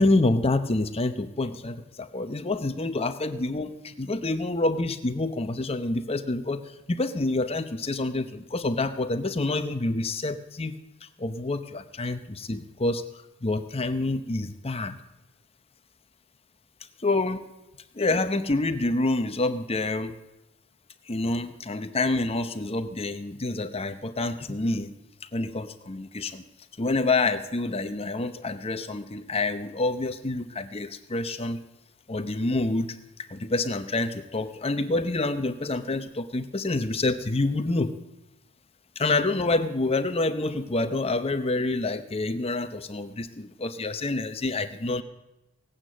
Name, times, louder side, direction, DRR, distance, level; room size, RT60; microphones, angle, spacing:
voice 1, 0.0-10.8 11.2-13.0 13.4-15.0 17.0-17.4 17.9-20.2 21.1-24.9 25.3-26.4 26.8-31.6 32.1-33.0 33.3-37.9 39.0-45.0, left 2 dB, 25° left, 10 dB, 0.7 m, -27 dB
18.0 x 8.9 x 7.6 m, 0.95 s
head